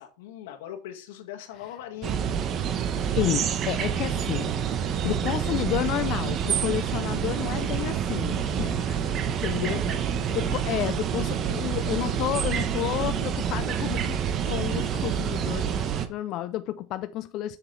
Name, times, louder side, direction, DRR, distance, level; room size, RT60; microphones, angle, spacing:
voice 1, 0.0-2.2 7.0-7.2 9.0-10.6, left 10 dB, 85° left, 1.7 m, -42 dB
sound 1, 2.0-16.1, right 8 dB, 35° right, 0.9 m, -27 dB
voice 2, 3.1-4.5 4.8-9.8 10.3-17.6, left 14 dB, 45° left, 0.4 m, -31 dB
7.3 x 6.8 x 3.2 m
supercardioid pair, 155°, 0 cm